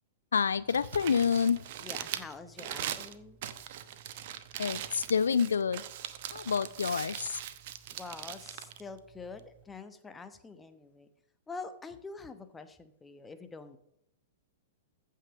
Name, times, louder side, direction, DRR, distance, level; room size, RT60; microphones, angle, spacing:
voice 1, 0.3-1.6 4.6-5.8 6.3-7.4, left 6 dB, 70° left, 17 dB, 0.4 m, -28 dB
Crumpling crinkling, 0.5-9.6, right 11 dB, 50° right, 0.9 m, -41 dB
voice 2, 1.8-3.4 7.9-11.1 11.5-13.8, left 4 dB, 10° left, 9 dB, 1.0 m, -46 dB
15.0 x 5.7 x 6.1 m, 0.77 s
figure-of-eight pair, 105°, 0 cm